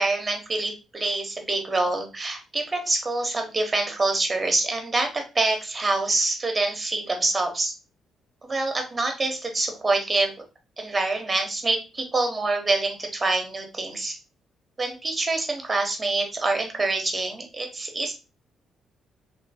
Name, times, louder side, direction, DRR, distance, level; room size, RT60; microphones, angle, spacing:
voice 1, 0.0-7.7 8.4-10.3 10.8-14.2 14.8-18.1, right 2 dB, 25° right, 4 dB, 1.0 m, -26 dB
2.9 x 2.8 x 2.8 m, 0.30 s
cardioid pair, 90°, 0 cm